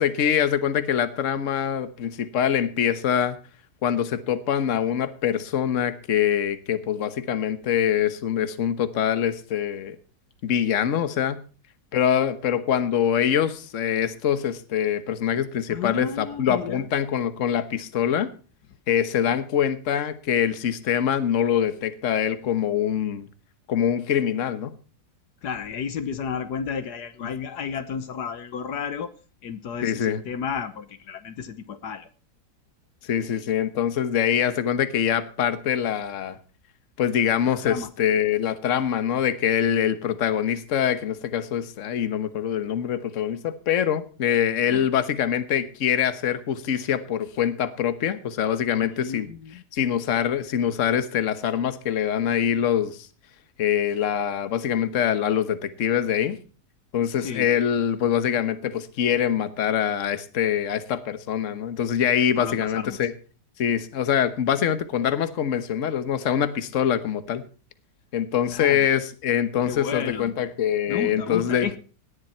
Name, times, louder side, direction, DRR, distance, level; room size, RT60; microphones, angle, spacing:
voice 1, 0.0-3.4 3.8-10.0 10.4-11.4 11.9-18.3 18.9-23.3 23.7-24.7 29.8-30.2 33.0-36.4 37.0-49.3 49.7-53.1 53.6-56.4 56.9-63.1 63.6-67.4 68.1-71.7, left 9 dB, 50° left, 12 dB, 1.3 m, -24 dB
voice 2, 15.7-16.9 25.4-29.1 29.4-32.1 37.5-37.9 44.7-44.9 48.8-49.6 57.2-57.5 62.4-63.0 68.5-68.9 69.6-70.4 70.9-71.8, left 7 dB, 70° left, 11 dB, 1.5 m, -32 dB
18.0 x 10.5 x 4.4 m, 0.37 s
omnidirectional pair, 1.8 m